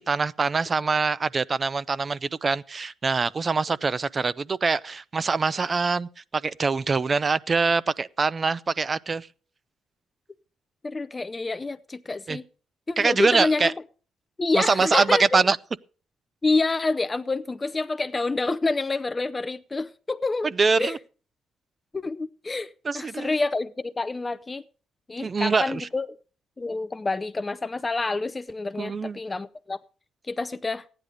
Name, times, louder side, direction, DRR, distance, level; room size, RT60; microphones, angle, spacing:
voice 1, 0.0-9.3 12.3-12.4 13.0-13.7 14.5-15.6 20.6-21.0 22.8-23.3 25.2-25.9 28.8-29.2, right 4 dB, 35° right, 0.5 m, -24 dB
voice 2, 10.8-12.4 12.9-13.7 14.4-15.4 16.4-20.5 20.8-21.0 21.9-24.6 25.1-26.1 26.6-29.8 30.3-30.8, left 3 dB, 25° left, 0.5 m, -28 dB
14.5 x 10.0 x 5.0 m
cardioid pair, 90°, 0 cm